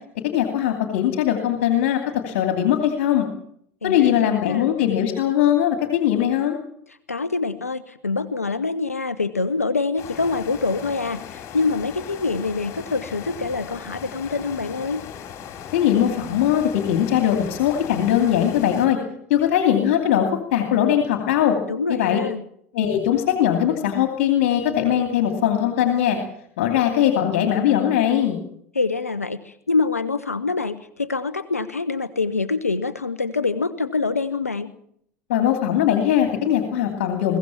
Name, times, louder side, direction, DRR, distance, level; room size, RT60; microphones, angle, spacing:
voice 1, 0.2-3.3 3.8-6.6 15.7-19.0 19.3-20.3 20.5-21.6 21.9-22.2 22.7-26.2 26.6-28.4 35.3-37.4, left 10 dB, 60° left, 4 dB, 2.6 m, -20 dB
voice 2, 3.8-4.7 7.1-15.0 21.7-22.4 28.7-34.7, left 4 dB, 85° left, 13 dB, 0.8 m, -25 dB
sound 1, 10.0-18.9, left 8 dB, 40° left, 4.7 m, -38 dB
22.0 x 16.0 x 7.3 m, 0.68 s
figure-of-eight pair, 80°, 8 cm